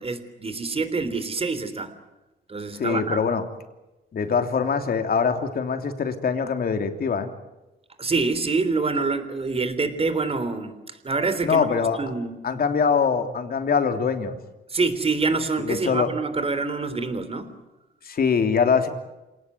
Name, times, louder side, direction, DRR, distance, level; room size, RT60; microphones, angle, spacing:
voice 1, 0.0-1.9 2.5-3.2 8.0-11.6 12.0-12.3 14.7-17.5, right 3 dB, 30° right, 11 dB, 3.5 m, -26 dB
voice 2, 2.7-3.4 4.1-7.3 11.4-12.0 12.4-14.4 15.6-16.1 18.0-18.9, left 6 dB, 50° left, 6 dB, 3.2 m, -23 dB
27.5 x 18.5 x 9.5 m, 1.0 s
cardioid pair, 90°, 20 cm